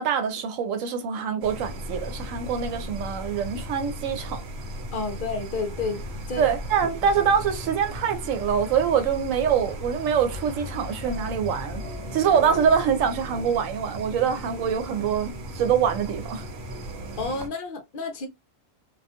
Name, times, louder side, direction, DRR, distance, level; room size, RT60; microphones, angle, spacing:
voice 1, 0.0-4.4 6.4-11.8 12.1-16.4, right 7 dB, 85° right, 1.0 m, -24 dB
sound 1, 1.4-17.5, equal, 60° right, 0.8 m, -36 dB
voice 2, 4.9-6.5 17.2-18.3, left 3 dB, 55° left, 0.6 m, -31 dB
sound 2, 7.0-13.4, equal, 25° left, 1.0 m, -44 dB
2.4 x 2.2 x 2.7 m
omnidirectional pair, 1.3 m